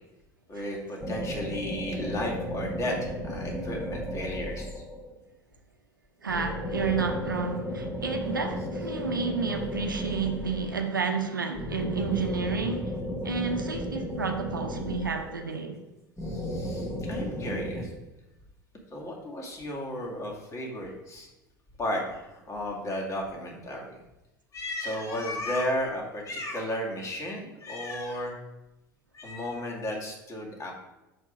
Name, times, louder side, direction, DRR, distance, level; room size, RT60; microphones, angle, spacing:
voice 1, 0.5-4.8 16.2-18.0 18.9-21.3 21.8-24.0 24.5-28.4 29.1-30.7, left 1 dB, 30° left, 2.1 m, -34 dB
sound 1, 1.0-5.2 6.3-10.9 11.5-15.6 16.2-17.8, equal, 15° left, 1.5 m, -34 dB
voice 2, 6.2-12.9 13.2-15.8, right 5 dB, 85° right, 0.7 m, -31 dB
6.1 x 4.5 x 5.0 m
figure-of-eight pair, 70°, 11 cm